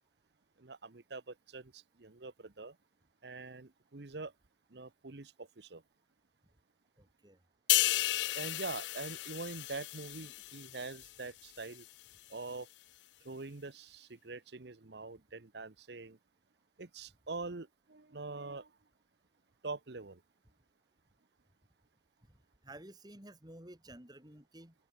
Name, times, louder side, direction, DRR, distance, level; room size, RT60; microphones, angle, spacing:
voice 1, 0.6-2.8 3.2-4.3 4.7-5.8 8.3-11.9 12.3-12.7 13.2-16.2 16.8-18.7 19.6-20.2, right 3 dB, 65° right, 1.0 m, -44 dB
voice 2, 7.0-7.4 22.6-24.7, right 1 dB, 20° right, 2.9 m, -52 dB
sound 1, 7.7-11.2 11.6-11.8, left 17 dB, 75° left, 0.3 m, -33 dB
head